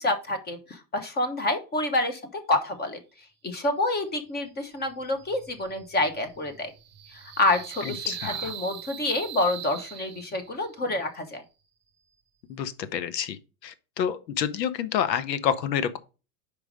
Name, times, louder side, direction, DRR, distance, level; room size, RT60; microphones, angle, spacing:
voice 1, 0.0-3.0 3.4-6.7 7.1-11.4, left 2 dB, 20° left, 1.0 m, -28 dB
sound 1, 4.7-10.7, right 10 dB, 20° right, 0.9 m, -41 dB
voice 2, 7.8-8.5 12.5-16.0, left 9 dB, 90° left, 1.0 m, -29 dB
5.1 x 4.8 x 5.0 m
supercardioid pair, 130°, 48 cm